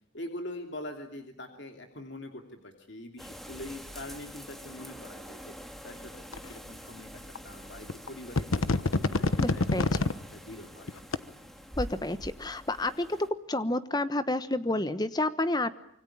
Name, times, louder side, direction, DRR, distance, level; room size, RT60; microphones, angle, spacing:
voice 1, 0.1-9.9 10.3-10.9, left 1 dB, 55° left, 4 dB, 2.8 m, -44 dB
sound 1, 3.2-13.3, equal, ahead, 1.9 m, -45 dB
sound 2, 6.3-6.4 7.3-7.4 7.9-8.1 8.4-10.1 10.9-11.2, left 2 dB, 85° left, 1.1 m, -26 dB
voice 2, 9.4-9.9 11.8-13.2 13.5-15.7, left 2 dB, 20° left, 12 dB, 1.1 m, -30 dB
26.0 x 24.5 x 8.7 m, 0.69 s
head